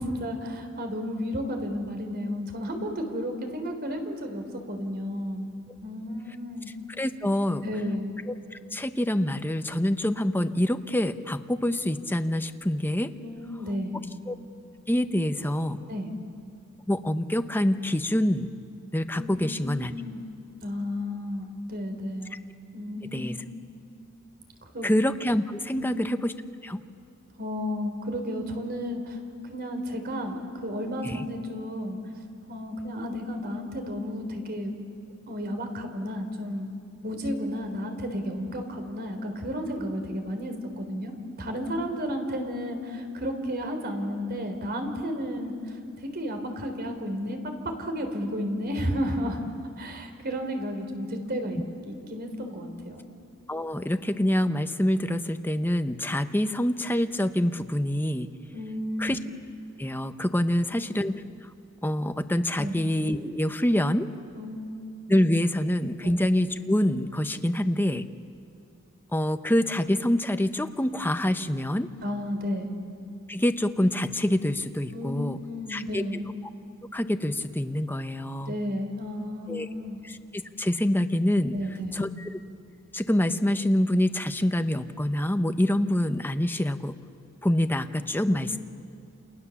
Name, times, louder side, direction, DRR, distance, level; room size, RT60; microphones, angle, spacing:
voice 1, 0.0-5.5 5.8-6.7 7.6-8.2 13.2-14.0 15.9-16.1 19.1-20.2 20.6-22.4 22.7-23.5 24.6-24.9 25.7-25.9 27.4-29.2 29.5-32.0 32.5-34.7 35.3-36.7 37.0-41.1 41.4-47.4 47.8-49.4 49.8-51.6 51.8-53.0 58.5-59.2 60.7-60.8 62.6-62.8 64.3-64.9 66.0-66.1 72.0-72.8 74.9-76.3 78.5-80.0 81.5-82.1 88.3-88.6, equal, 50° right, 6 dB, 3.6 m, -32 dB
voice 2, 7.0-7.6 8.5-13.1 14.3-14.4 14.9-15.8 16.9-18.5 18.9-19.9 23.1-23.4 24.8-26.3 26.6-26.8 31.0-31.2 53.5-58.3 59.0-59.2 59.8-61.2 61.8-64.1 65.1-68.0 69.1-71.9 73.3-75.4 75.7-76.0 76.9-78.5 79.5-79.7 80.0-81.6 81.9-82.3 82.9-87.0 87.4-88.6, left 1 dB, 10° left, 8 dB, 0.9 m, -26 dB
29.5 x 28.0 x 7.1 m, 2.3 s
head